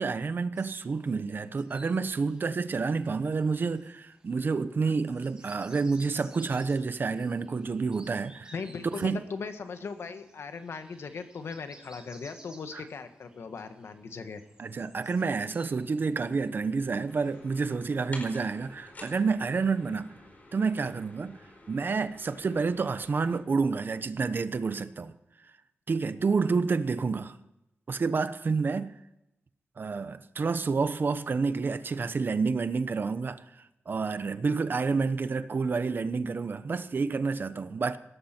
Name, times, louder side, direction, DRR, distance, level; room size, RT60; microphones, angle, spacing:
voice 1, 0.0-8.5 8.9-9.2 12.7-12.8 14.6-20.1 20.5-21.4 21.7-25.1 25.9-27.4 27.9-29.0 29.8-33.4 33.9-38.0, right 4 dB, 50° right, 0.9 m, -29 dB
sound 1, 0.6-17.6, right 2 dB, 20° right, 3.2 m, -57 dB
voice 2, 8.5-14.4, left 5 dB, 75° left, 1.5 m, -39 dB
sound 2, 17.1-23.4, left 2 dB, 40° left, 4.4 m, -50 dB
18.0 x 13.5 x 4.5 m
wide cardioid pair, 110°, 4 cm